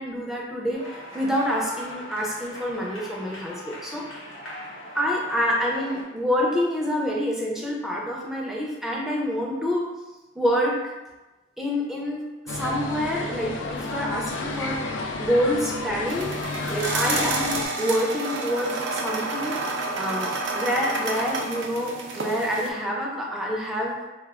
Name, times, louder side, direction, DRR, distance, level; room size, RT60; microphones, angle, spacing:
voice 1, 0.0-4.0 4.9-9.9 10.4-10.9 11.6-12.2 12.5-14.8 15.2-16.3 16.7-19.6 19.9-23.9, equal, ahead, -3 dB, 0.4 m, -27 dB
sound 1, 0.7-6.0, left 1 dB, 90° left, 0.7 m, -40 dB
sound 2, 12.5-17.7, left 2 dB, 70° left, 0.3 m, -31 dB
sound 3, 16.1-22.7, right 3 dB, 65° right, 0.4 m, -30 dB
2.3 x 2.2 x 3.5 m, 1.1 s
head